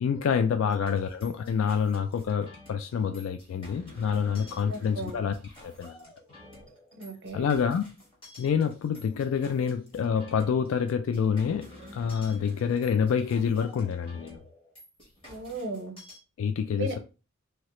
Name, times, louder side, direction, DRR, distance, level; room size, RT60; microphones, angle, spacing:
voice 1, 0.0-5.3 5.6-6.0 7.3-7.8 8.4-14.4 16.4-17.0, left 7 dB, 75° left, 0.3 m, -27 dB
sound 1, 0.7-16.2, left 1 dB, 25° left, 1.2 m, -50 dB
voice 2, 4.7-5.2 7.0-7.5 15.2-16.0 16.8-17.0, right 2 dB, 55° right, 0.7 m, -36 dB
3.0 x 2.8 x 3.0 m
head